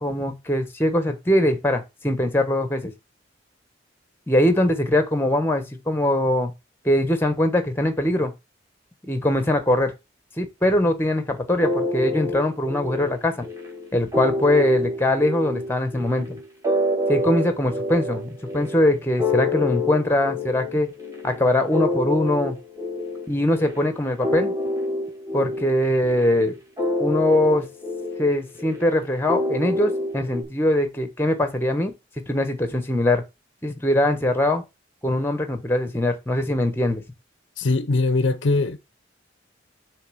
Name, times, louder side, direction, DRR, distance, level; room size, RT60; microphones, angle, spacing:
voice 1, 0.0-2.9 4.3-6.5 6.8-8.3 9.1-9.9 10.4-13.4 13.9-16.4 17.1-20.9 21.2-22.5 23.3-24.5 25.3-26.6 27.0-27.7 28.2-31.9 32.3-33.2 33.6-34.6 35.0-37.0, left 1 dB, 10° left, 1.2 m, -22 dB
sound 1, 11.6-30.4, left 2 dB, 15° right, 2.1 m, -28 dB
voice 2, 37.6-38.8, left 3 dB, 70° left, 0.6 m, -21 dB
6.9 x 3.5 x 6.2 m
head